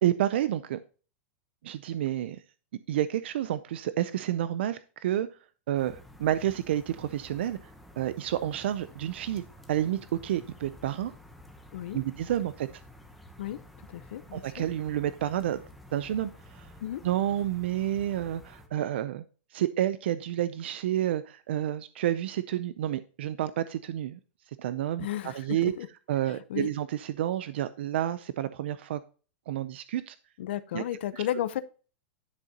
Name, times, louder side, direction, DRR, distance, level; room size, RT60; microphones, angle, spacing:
voice 1, 0.0-0.8 1.6-2.4 2.9-5.3 5.7-7.6 8.0-9.4 9.7-11.1 11.9-12.8 14.3-15.6 15.9-16.7 17.0-19.2 19.5-24.2 24.6-25.7 26.1-29.0 29.5-30.2 30.7-30.8 31.1-31.2, right 12 dB, 65° right, 14 dB, 0.5 m, -30 dB
sound 1, 5.8-18.7, left 1 dB, ahead, 0.8 m, -51 dB
voice 2, 13.9-14.7 16.8-17.0 25.0-25.9 26.5-26.7 30.4-31.6, left 12 dB, 65° left, 14 dB, 0.7 m, -33 dB
10.5 x 6.4 x 2.8 m, 0.36 s
supercardioid pair, 175°, 7 cm